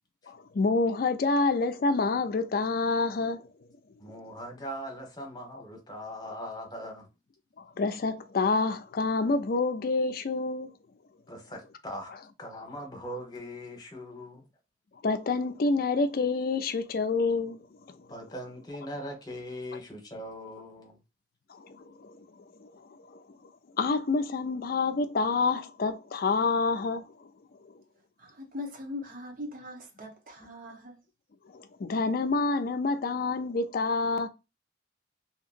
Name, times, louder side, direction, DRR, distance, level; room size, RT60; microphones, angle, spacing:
voice 1, 0.3-3.5 7.6-10.7 15.0-17.7 21.6-22.2 22.6-22.7 23.1-23.2 23.8-27.1 31.5-34.3, left 3 dB, 50° left, 0.4 m, -27 dB
voice 2, 4.0-7.1 11.3-12.1 12.4-14.5 18.1-21.0, equal, 20° left, 1.0 m, -40 dB
voice 3, 28.2-31.0, left 2 dB, 50° right, 0.9 m, -41 dB
2.8 x 2.8 x 2.5 m
head